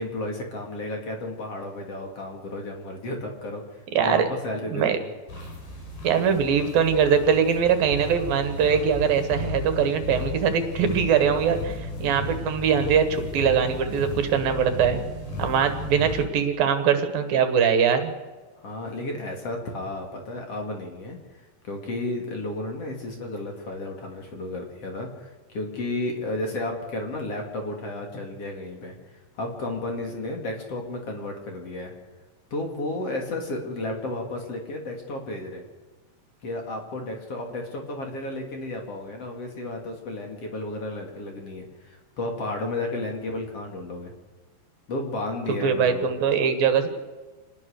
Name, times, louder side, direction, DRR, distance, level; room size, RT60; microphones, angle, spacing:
voice 1, 0.0-5.1 15.4-15.6 18.6-21.2 21.6-28.9 29.4-31.9 32.5-35.6 36.4-44.1 44.9-46.1, left 2 dB, 40° left, 2 dB, 3.4 m, -33 dB
voice 2, 4.7-5.0 6.0-15.0 15.4-18.1 45.6-46.9, right 7 dB, 70° right, 8 dB, 3.3 m, -22 dB
sound 1, 5.3-16.2, left 2 dB, 60° left, 6.9 m, -34 dB
26.5 x 19.5 x 6.6 m, 1.3 s
omnidirectional pair, 4.3 m